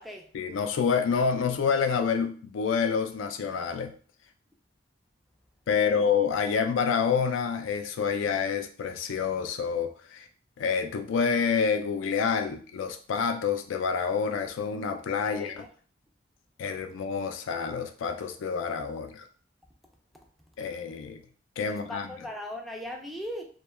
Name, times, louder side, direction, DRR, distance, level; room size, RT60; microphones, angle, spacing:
voice 1, 0.3-3.9 5.7-10.3 10.6-15.7 16.6-19.3 20.6-21.2 21.6-22.1, left 6 dB, 75° left, 7 dB, 0.3 m, -28 dB
voice 2, 5.7-6.0 15.2-15.7 21.7-23.4, left 1 dB, ahead, 1 dB, 0.3 m, -39 dB
2.2 x 2.1 x 3.1 m, 0.43 s
head